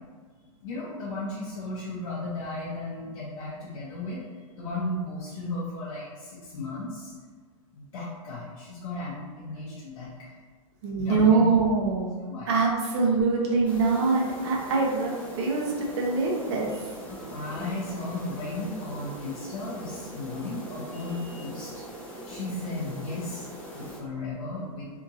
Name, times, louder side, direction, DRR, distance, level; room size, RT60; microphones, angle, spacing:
voice 1, 0.6-4.2 4.5-7.1 7.7-10.3 10.9-11.4 12.3-12.5 16.7-16.8 17.1-21.8 22.3-23.5 23.7-24.9, left 2 dB, 60° left, -7 dB, 0.7 m, -35 dB
voice 2, 10.8-12.2 12.5-16.9, right 4 dB, 50° right, -1 dB, 0.8 m, -24 dB
sound 1, 13.6-24.0, equal, 10° left, 0.5 m, -41 dB
2.8 x 2.4 x 2.7 m, 1.5 s
hypercardioid pair, 145°, 18 cm